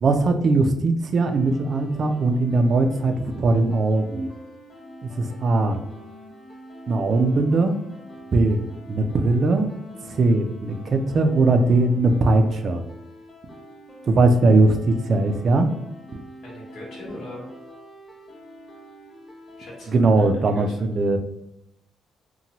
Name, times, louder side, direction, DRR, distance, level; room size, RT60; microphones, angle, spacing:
voice 1, 0.0-4.3 5.2-5.8 6.9-7.8 8.3-8.6 8.9-9.7 10.1-12.8 14.1-15.7 19.9-21.2, right 2 dB, 50° right, 7 dB, 0.3 m, -20 dB
sound 1, 1.2-19.9, equal, 35° left, 1.1 m, -44 dB
voice 2, 16.4-17.5 19.6-20.9, left 1 dB, 70° left, -5 dB, 1.1 m, -40 dB
2.7 x 2.2 x 2.8 m, 0.80 s
cardioid pair, 90°, 0 cm